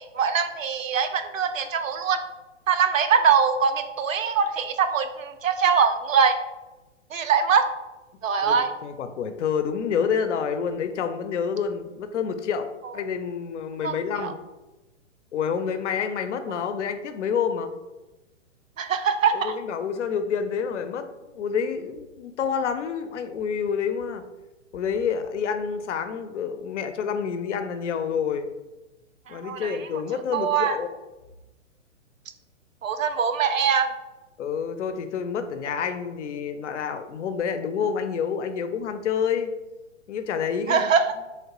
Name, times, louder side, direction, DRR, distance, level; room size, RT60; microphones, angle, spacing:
voice 1, 0.0-2.2 2.7-6.4 7.1-7.7 8.2-8.7 13.8-13.9 14.2-14.3 18.8-19.5 29.3-29.8 30.3-30.8 32.8-33.9 40.7-41.2, right 6 dB, 90° right, 8 dB, 0.5 m, -22 dB
voice 2, 8.4-14.4 15.3-17.7 19.3-24.2 24.7-28.5 29.3-30.9 34.4-39.5 40.1-40.9, left 7 dB, 65° left, 9 dB, 0.5 m, -28 dB
3.1 x 2.8 x 2.9 m, 1.1 s
hypercardioid pair, 125°, 38 cm